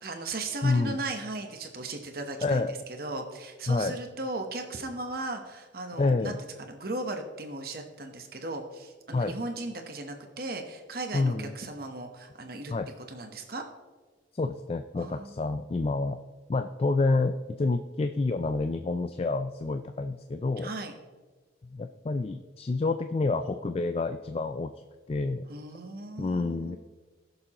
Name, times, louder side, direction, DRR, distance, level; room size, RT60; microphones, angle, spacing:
voice 1, 0.0-2.7 3.0-12.7 13.1-13.6 15.0-15.3 20.6-20.9 25.5-26.8, right 2 dB, 50° right, 4 dB, 1.0 m, -37 dB
voice 2, 0.6-1.0 2.4-2.8 3.7-4.0 6.0-6.4 9.1-9.3 11.1-11.5 12.7-12.9 14.3-16.2 16.5-20.7 21.7-24.7 25.1-25.5 26.2-26.8, left 3 dB, 30° left, 8 dB, 0.3 m, -28 dB
19.5 x 6.8 x 2.9 m, 1.3 s
head